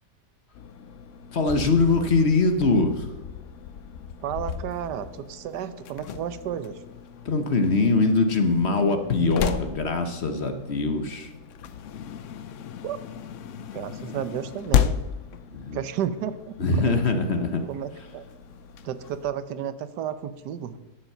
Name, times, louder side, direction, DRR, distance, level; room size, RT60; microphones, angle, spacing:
sound 1, 0.5-19.2, left 9 dB, 65° left, 0.8 m, -34 dB
voice 1, 1.3-3.1 7.2-11.3 15.5-15.8 16.6-17.6, left 3 dB, 45° left, 7 dB, 1.1 m, -22 dB
voice 2, 4.2-6.8 12.8-13.0 13.6-15.0 15.7-16.9 17.7-18.2 18.8-20.8, right 9 dB, 85° right, 13 dB, 1.3 m, -32 dB
11.0 x 7.3 x 6.6 m, 1.1 s
omnidirectional pair, 1.8 m